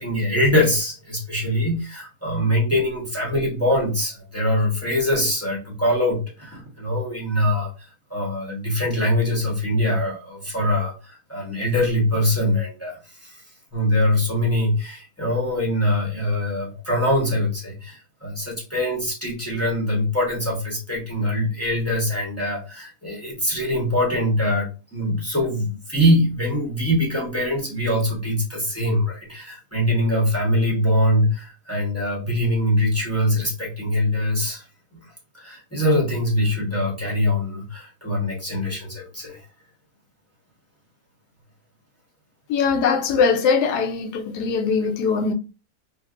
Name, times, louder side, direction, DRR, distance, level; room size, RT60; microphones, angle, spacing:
voice 1, 0.0-7.7 8.1-13.4 13.7-34.6 35.4-39.4, left 1 dB, 15° left, 0.7 m, -23 dB
voice 2, 42.5-45.3, left 5 dB, 80° left, 1.1 m, -21 dB
3.5 x 2.3 x 2.4 m
omnidirectional pair, 1.7 m